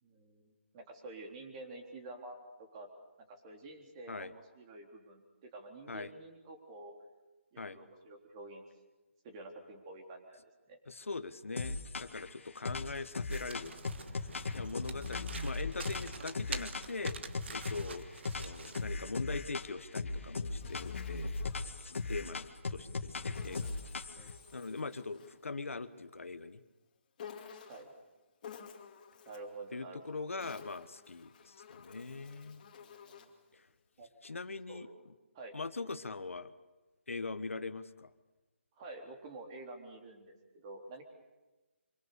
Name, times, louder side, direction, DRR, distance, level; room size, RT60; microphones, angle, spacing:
voice 1, 0.0-2.9 3.3-6.9 7.5-8.6 9.2-10.4 10.7-10.8 23.9-24.3 27.7-27.9 29.3-30.2 32.8-33.3 34.0-34.1 34.7-34.9 35.3-35.5 38.8-41.0, right 2 dB, 25° right, 3 dB, 3.8 m, -49 dB
voice 2, 10.9-13.7 14.1-17.2 17.5-21.3 21.9-23.8 24.1-26.6 29.7-32.6 33.5-33.6 34.2-34.9 35.5-36.5 37.1-38.1, left 3 dB, 90° left, 12 dB, 1.3 m, -42 dB
sound 1, 11.6-12.3 12.6-17.9 18.2-19.7 19.9-24.4, left 3 dB, 75° left, 2.1 m, -38 dB
Domestic sounds home sounds, 13.3-18.9, right 5 dB, 60° right, 1.8 m, -47 dB
Insect, 20.1-22.3 23.3-25.4 27.2-28.0 28.4-29.6 30.2-33.4, left 7 dB, 35° left, 2.5 m, -53 dB
26.0 x 23.5 x 6.9 m, 1.1 s
hypercardioid pair, 160°, 7 cm